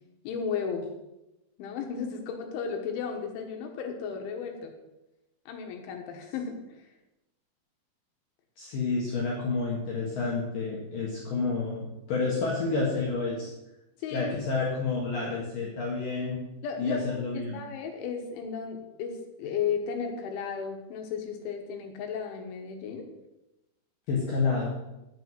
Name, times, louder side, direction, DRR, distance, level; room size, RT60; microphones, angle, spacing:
voice 1, 0.3-0.9 1.6-4.7 5.5-6.9 14.0-14.4 16.6-17.0 17.3-23.0, left 6 dB, 80° left, 3 dB, 3.7 m, -34 dB
voice 2, 8.6-11.8 12.1-13.5 14.1-16.4 16.8-17.6 24.1-24.8, left 4 dB, 60° left, -3 dB, 2.7 m, -29 dB
9.0 x 7.5 x 6.1 m, 0.95 s
omnidirectional pair, 5.4 m